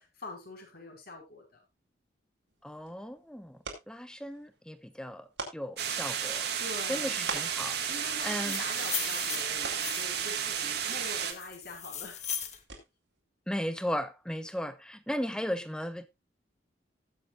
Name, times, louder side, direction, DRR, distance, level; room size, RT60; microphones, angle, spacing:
voice 1, 0.0-1.6 6.6-7.2 7.9-12.2, left 2 dB, 55° left, 5.0 m, -44 dB
sound 1, 2.5-13.2, right 4 dB, 90° right, 3.9 m, -47 dB
voice 2, 2.6-3.6 3.9-5.2 5.5-6.5 6.9-7.8 8.2-8.6 13.5-16.1, equal, 5° left, 0.9 m, -36 dB
sound 2, 5.8-11.3, right 8 dB, 60° right, 1.9 m, -32 dB
sound 3, 8.2-10.3 10.9-12.6, left 9 dB, 40° left, 1.5 m, -38 dB
19.0 x 7.9 x 2.5 m
head